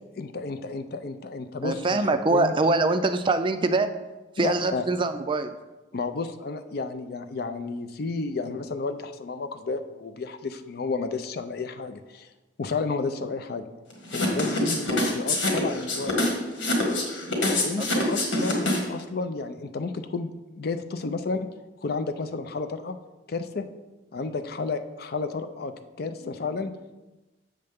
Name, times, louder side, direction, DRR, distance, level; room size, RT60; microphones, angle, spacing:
voice 1, 0.2-2.5 4.4-4.8 5.9-12.3 12.6-13.6 14.1-16.2 17.5-20.3 20.6-21.5 21.8-23.0 23.3-23.6 24.1-26.7, left 4 dB, 55° left, 9 dB, 0.5 m, -32 dB
voice 2, 1.6-3.9 4.4-5.6 17.8-18.1, right 3 dB, 25° right, 9 dB, 0.4 m, -24 dB
sound 1, 14.1-19.0, left 2 dB, 90° left, 1.7 m, -25 dB
7.6 x 6.7 x 3.5 m, 1.1 s
head